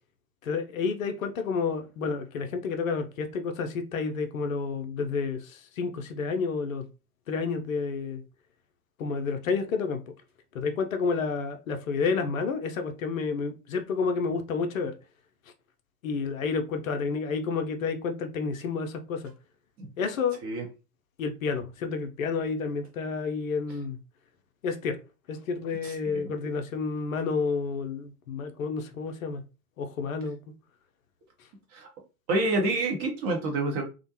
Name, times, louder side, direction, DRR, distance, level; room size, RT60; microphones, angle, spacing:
voice 1, 0.4-6.9 7.3-8.2 9.0-10.0 10.5-14.9 16.0-19.3 20.0-20.4 21.2-24.0 24.6-25.0 25.3-29.4 29.8-30.4, left 5 dB, 65° left, 0.5 m, -30 dB
voice 2, 25.8-26.3 31.7-31.9 32.3-33.8, right 2 dB, 30° right, 0.7 m, -28 dB
2.4 x 2.1 x 2.7 m
figure-of-eight pair, 90°, 45 cm